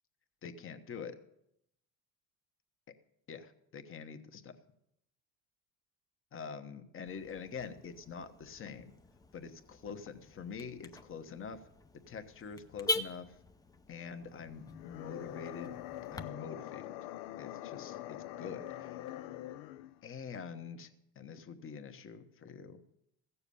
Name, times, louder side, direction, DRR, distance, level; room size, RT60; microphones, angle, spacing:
voice 1, 0.4-1.2 3.3-4.6 6.3-8.9 9.3-11.6 12.1-13.3 13.9-15.7 16.1-16.9 17.4-19.0 20.0-20.9 21.2-22.8, left 6 dB, 35° left, 8 dB, 1.1 m, -45 dB
Car / Alarm, 7.1-16.2, left 2 dB, 10° left, 0.5 m, -43 dB
sound 1, 14.6-20.0, left 14 dB, 80° left, 0.7 m, -44 dB
15.5 x 7.0 x 6.9 m, 0.79 s
cardioid pair, 115°, 37 cm